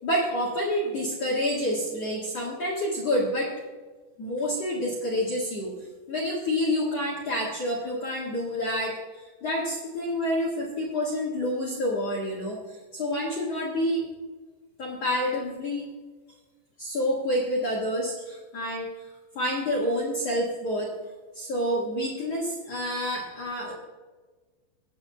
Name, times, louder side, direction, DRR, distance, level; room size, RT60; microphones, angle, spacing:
voice 1, 0.0-3.5 4.2-5.7 6.1-14.1 14.8-15.9 16.8-18.9 19.4-20.9 21.3-23.7, equal, 55° left, -4 dB, 1.9 m, -28 dB
24.5 x 8.8 x 2.3 m, 1.4 s
omnidirectional pair, 5.4 m